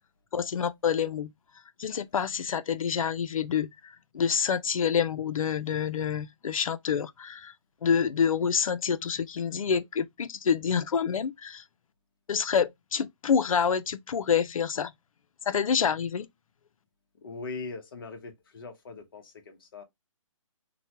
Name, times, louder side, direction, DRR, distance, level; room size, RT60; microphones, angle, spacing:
voice 1, 0.3-1.3 1.8-7.5 7.8-11.6 12.3-14.9 15.5-16.3, left 7 dB, 85° left, 0.4 m, -27 dB
voice 2, 17.2-19.8, left 3 dB, 40° left, 0.8 m, -41 dB
2.9 x 2.1 x 2.8 m
hypercardioid pair, 165°, 17 cm